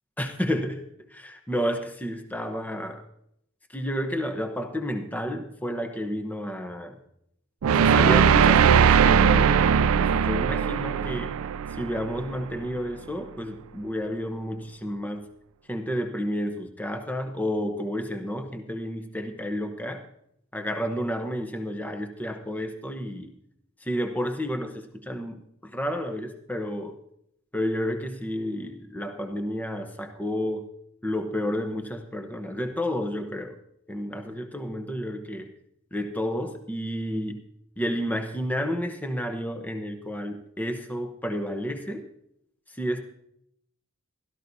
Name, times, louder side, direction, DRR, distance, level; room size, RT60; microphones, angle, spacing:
voice 1, 0.2-0.8 1.1-3.0 3.7-7.0 7.7-11.3 11.7-15.3 15.7-20.0 20.5-23.3 23.8-27.0 27.5-30.7 31.0-33.6 33.9-35.5 35.9-37.4 37.8-42.1 42.7-43.0, equal, 10° left, 5 dB, 0.9 m, -31 dB
sound 1, 7.6-12.7, right 7 dB, 90° right, 0.4 m, -20 dB
16.5 x 13.0 x 2.7 m, 0.73 s
head